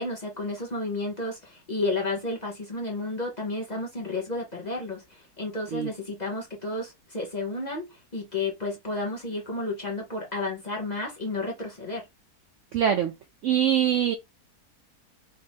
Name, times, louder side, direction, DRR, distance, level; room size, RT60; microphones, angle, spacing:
voice 1, 0.0-12.1, left 2 dB, 35° left, 0.8 m, -32 dB
voice 2, 12.7-13.1 13.4-14.1, right 9 dB, 70° right, 0.7 m, -23 dB
4.2 x 2.5 x 3.4 m
omnidirectional pair, 1.7 m